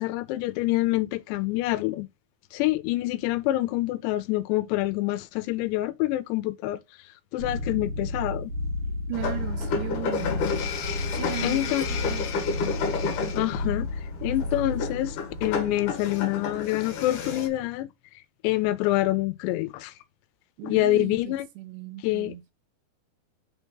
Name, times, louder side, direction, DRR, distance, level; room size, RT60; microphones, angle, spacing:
voice 1, 0.0-2.1 2.5-6.8 7.3-8.5 11.4-11.9 13.3-13.9 14.2-17.9 18.4-19.9 20.6-21.5 22.0-22.5, left 16 dB, 85° left, 2.8 m, -26 dB
sound 1, 7.4-15.9, left 2 dB, 60° right, 2.8 m, -32 dB
sound 2, 9.1-17.5, left 5 dB, 60° left, 2.7 m, -31 dB
voice 2, 9.1-10.4 11.1-12.5 20.6-22.4, right 15 dB, 80° right, 2.9 m, -37 dB
6.5 x 3.5 x 5.4 m
omnidirectional pair, 5.0 m